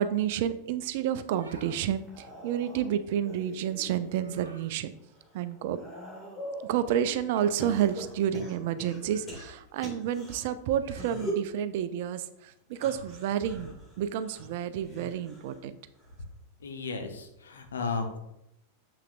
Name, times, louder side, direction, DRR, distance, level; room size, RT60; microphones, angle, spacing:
voice 1, 0.0-2.0 2.4-4.9 5.3-5.8 6.7-15.7, right 10 dB, 50° right, 13 dB, 0.4 m, -30 dB
sound 1, 1.3-1.8 4.1-4.7 7.3-7.6 9.0-9.4 10.7-11.2 12.8-13.2, right 2 dB, 75° right, 0.9 m, -52 dB
sound 2, 1.9-4.3 4.8-6.7 7.6-10.4 10.9-11.5 12.7-15.6 15.9-16.4 17.5-17.6, right 1 dB, 15° left, 2.1 m, -42 dB
voice 2, 16.6-18.2, left 4 dB, 65° left, 5 dB, 0.8 m, -34 dB
6.8 x 5.8 x 2.5 m, 0.84 s
figure-of-eight pair, 90°, 0 cm